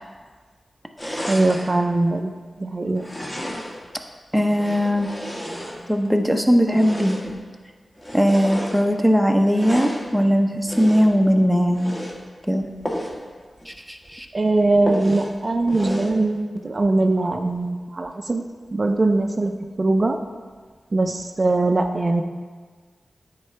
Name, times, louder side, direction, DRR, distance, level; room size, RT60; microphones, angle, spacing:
sound 1, 1.0-1.8 2.9-3.9 4.4-6.1 6.7-7.4 8.0-8.8 9.5-10.1 10.7-11.2 11.7-12.2 12.8-13.2 13.6-13.7 14.0-14.1 14.9-15.3 15.7-16.2, equal, 20° left, 1.4 m, -32 dB
voice 1, 1.3-2.3 2.6-3.0 14.3-18.4 18.7-19.5 19.8-20.2 20.9-22.2, right 2 dB, 45° right, 5 dB, 0.4 m, -21 dB
voice 2, 4.3-5.1 5.9-7.2 8.1-12.0 12.5-12.7 13.7-14.3, equal, ahead, 4 dB, 0.7 m, -19 dB
9.4 x 3.8 x 4.4 m, 1.5 s
cardioid pair, 55°, 0 cm